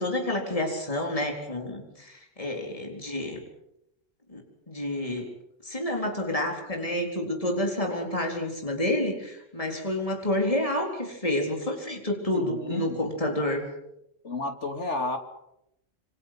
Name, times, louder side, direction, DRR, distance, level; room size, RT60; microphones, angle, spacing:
voice 1, 0.0-3.4 4.3-5.3 5.6-13.7, left 1 dB, 30° left, 1 dB, 4.2 m, -29 dB
voice 2, 12.3-13.0 14.2-15.2, left 2 dB, 70° left, 5 dB, 3.2 m, -31 dB
27.5 x 26.5 x 6.1 m, 0.82 s
omnidirectional pair, 1.3 m